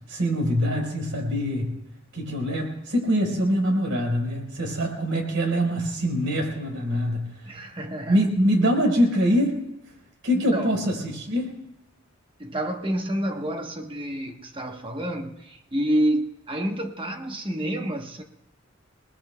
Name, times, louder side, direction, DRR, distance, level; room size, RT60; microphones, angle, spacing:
voice 1, 0.0-1.8 2.1-7.3 8.1-9.6 10.2-11.5, equal, 75° right, 4.4 m, -24 dB
voice 2, 7.5-8.3 10.3-10.8 12.4-18.2, right 1 dB, 25° right, 1.1 m, -28 dB
28.5 x 19.5 x 2.3 m
head